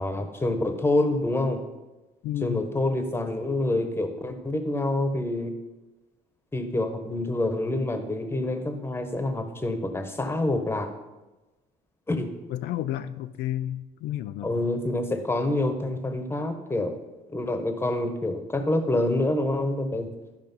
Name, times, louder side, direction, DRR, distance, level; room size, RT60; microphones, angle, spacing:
voice 1, 0.0-1.6 2.4-5.5 6.5-10.9 12.1-12.3 14.4-17.0 17.3-20.1, left 2 dB, 15° left, 7 dB, 1.2 m, -27 dB
voice 2, 2.2-2.6 12.5-14.5, left 12 dB, 80° left, 10 dB, 0.5 m, -31 dB
12.0 x 5.0 x 5.4 m, 1.1 s
cardioid pair, 110°, 17 cm